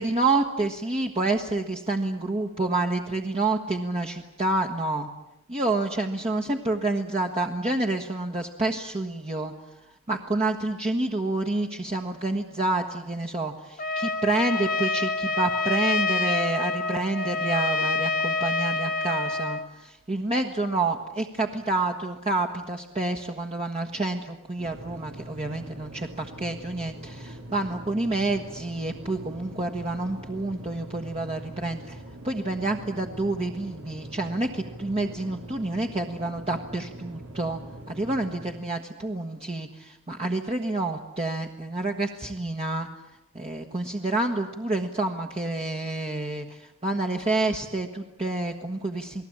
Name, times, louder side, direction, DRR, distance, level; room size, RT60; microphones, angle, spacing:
voice 1, 0.0-5.1 5.5-9.5 9.9-37.6 37.9-42.9 43.3-49.3, right 2 dB, 30° right, 2 dB, 1.4 m, -28 dB
Trumpet, 13.8-19.7, left 3 dB, 40° left, 1.3 m, -27 dB
sound 1, 24.6-38.5, right 1 dB, 90° right, 3.4 m, -43 dB
29.0 x 19.5 x 8.8 m, 0.90 s
head